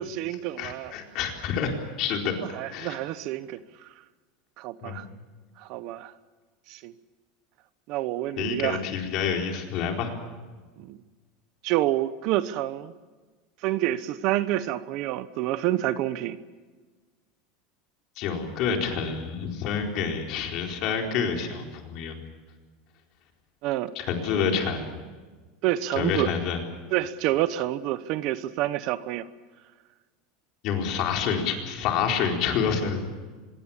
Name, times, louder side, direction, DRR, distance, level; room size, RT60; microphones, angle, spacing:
voice 1, 0.0-0.9 2.4-3.9 4.6-5.0 5.6-6.1 6.7-6.9 7.9-8.8 10.8-11.0 11.6-12.9 13.6-16.4 23.6-23.9 25.6-26.3 26.9-29.3, right 14 dB, 45° right, 0.9 m, -28 dB
voice 2, 0.6-2.3 2.7-3.0 4.8-5.0 8.4-10.1 18.2-22.2 23.9-24.8 25.9-26.6 30.6-33.0, left 6 dB, 40° left, 4.3 m, -28 dB
25.0 x 22.5 x 7.3 m
supercardioid pair, 170°, 0 cm